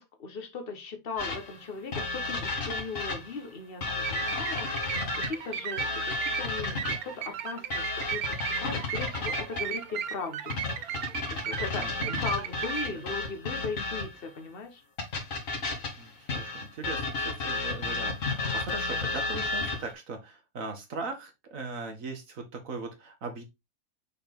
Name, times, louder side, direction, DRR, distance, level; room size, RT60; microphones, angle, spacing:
voice 1, 0.0-10.6 11.3-14.8, left 4 dB, 40° left, 6 dB, 1.4 m, -38 dB
sound 1, 1.2-3.4 3.8-7.2 7.7-9.8 10.5-14.3 15.0-19.9, left 3 dB, 65° left, 2.2 m, -33 dB
sound 2, 4.0-12.9, right 9 dB, 85° right, 1.2 m, -36 dB
voice 2, 11.8-12.3 12.9-13.0 16.0-23.4, right 3 dB, 65° right, 5 dB, 1.8 m, -39 dB
6.5 x 4.3 x 3.5 m, 0.22 s
omnidirectional pair, 1.5 m